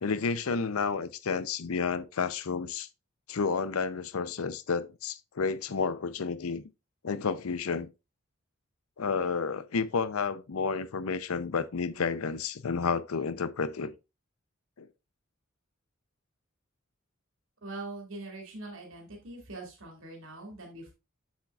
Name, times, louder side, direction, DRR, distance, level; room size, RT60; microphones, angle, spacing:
voice 1, 0.0-2.9 3.3-6.6 7.0-7.9 9.0-13.9 14.8-14.9, left 5 dB, 90° left, 0.6 m, -31 dB
voice 2, 17.6-20.9, right 2 dB, 70° right, 2.4 m, -42 dB
7.4 x 7.3 x 2.4 m
head